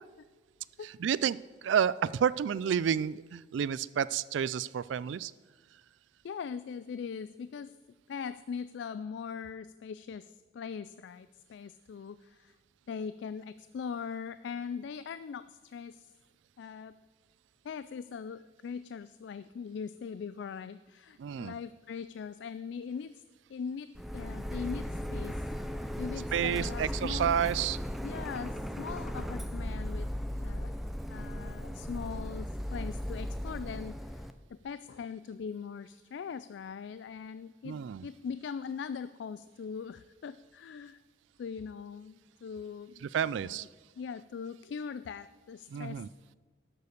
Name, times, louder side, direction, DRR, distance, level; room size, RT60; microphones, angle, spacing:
voice 1, 0.8-5.3 21.2-21.6 26.3-27.8 37.6-38.1 43.0-43.7 45.7-46.1, right 8 dB, 70° right, 20 dB, 0.3 m, -30 dB
voice 2, 6.2-7.7 8.1-12.6 12.9-16.1 16.6-16.9 17.6-23.2 23.5-25.3 26.0-27.3 28.0-30.1 30.4-30.7 31.1-37.8 38.0-41.0 41.4-43.1 44.0-46.0, left 6 dB, 65° left, 14 dB, 0.3 m, -41 dB
Printer, 23.9-34.3, equal, ahead, 0.4 m, -37 dB
12.0 x 6.8 x 6.5 m, 1.3 s
head